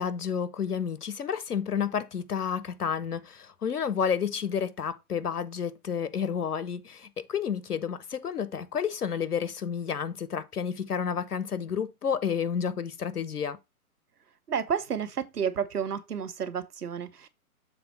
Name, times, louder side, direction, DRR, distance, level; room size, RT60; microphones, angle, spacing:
voice 1, 0.0-13.6, left 7 dB, 90° left, 0.9 m, -30 dB
voice 2, 14.5-17.3, right 7 dB, 90° right, 1.0 m, -31 dB
6.8 x 4.1 x 4.3 m
hypercardioid pair, 125°, 44 cm